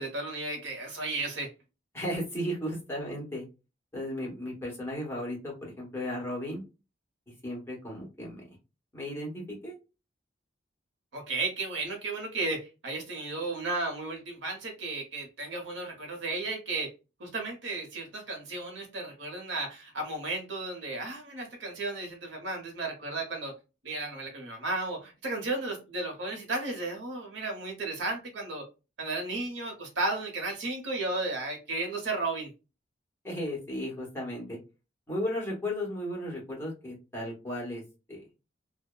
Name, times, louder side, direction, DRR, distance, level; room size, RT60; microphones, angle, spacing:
voice 1, 0.0-1.5 11.1-16.9 17.2-23.5 23.8-28.7 29.0-32.5, right 2 dB, 90° right, 1.0 m, -34 dB
voice 2, 1.9-3.4 3.9-6.6 7.4-8.6 8.9-9.8 33.2-34.6 35.1-37.8 38.1-38.2, equal, 15° left, 1.0 m, -35 dB
2.6 x 2.1 x 2.2 m
head